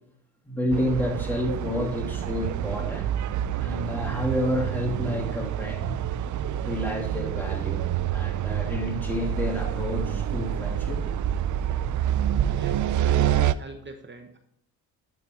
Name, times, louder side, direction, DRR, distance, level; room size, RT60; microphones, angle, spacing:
voice 1, 0.5-3.1 3.5-6.0 6.6-11.1, left 1 dB, 5° left, 2.7 m, -30 dB
sound 1, 0.7-13.5, right 10 dB, 55° right, 0.5 m, -27 dB
voice 2, 12.5-14.4, right 3 dB, 30° right, 1.1 m, -43 dB
12.5 x 4.2 x 4.5 m
cardioid pair, 85°, 36 cm